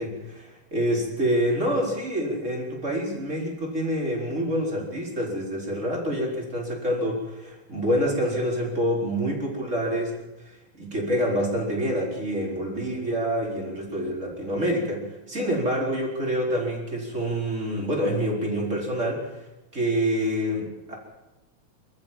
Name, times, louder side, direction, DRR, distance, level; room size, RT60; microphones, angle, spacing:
voice 1, 0.0-10.2 10.4-19.3 19.7-20.9, equal, 25° right, -1 dB, 4.8 m, -27 dB
26.0 x 13.5 x 7.5 m, 1.0 s
omnidirectional pair, 3.4 m